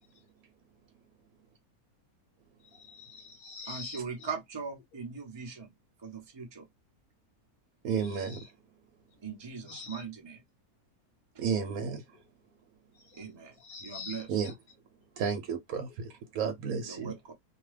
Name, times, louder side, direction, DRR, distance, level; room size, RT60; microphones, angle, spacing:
voice 1, 2.6-4.3 8.0-8.5 9.6-10.0 12.9-13.3 13.6-14.5, left 5 dB, 70° left, 1.2 m, -46 dB
voice 2, 3.7-5.7 6.0-6.7 9.2-10.4 13.1-13.6 13.8-14.3 16.9-17.3, right 5 dB, 30° right, 0.5 m, -40 dB
voice 3, 7.8-8.4 11.4-12.0 14.3-14.5 15.2-17.1, right 6 dB, 70° right, 1.0 m, -32 dB
2.6 x 2.3 x 3.1 m
omnidirectional pair, 1.6 m